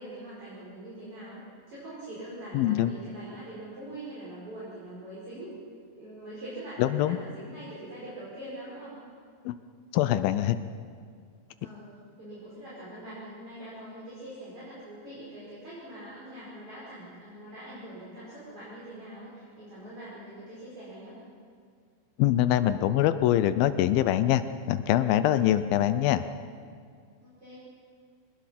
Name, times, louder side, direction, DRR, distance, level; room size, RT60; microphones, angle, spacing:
voice 1, 0.0-5.5 6.0-9.0 11.6-11.9 12.2-21.2 27.2-27.6, right 1 dB, 40° right, -9 dB, 6.5 m, -43 dB
voice 2, 2.5-2.9 6.8-7.2 9.5-9.6 9.9-10.6 22.2-24.4 24.7-26.2, left 12 dB, 85° left, 11 dB, 2.5 m, -23 dB
23.0 x 20.5 x 5.9 m, 2.1 s
omnidirectional pair, 4.1 m